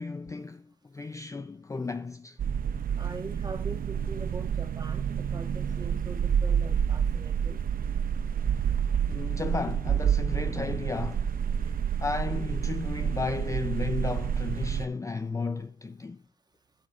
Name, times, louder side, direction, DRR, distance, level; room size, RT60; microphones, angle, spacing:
voice 1, 0.0-2.4 9.1-11.3 12.0-16.2, left 4 dB, 15° left, 0.4 m, -34 dB
sound 1, 2.4-14.9, right 8 dB, 45° right, 0.6 m, -29 dB
voice 2, 3.0-7.6 11.6-11.8, right 3 dB, 20° right, 1.9 m, -42 dB
8.7 x 6.2 x 5.8 m
cardioid pair, 90°, 20 cm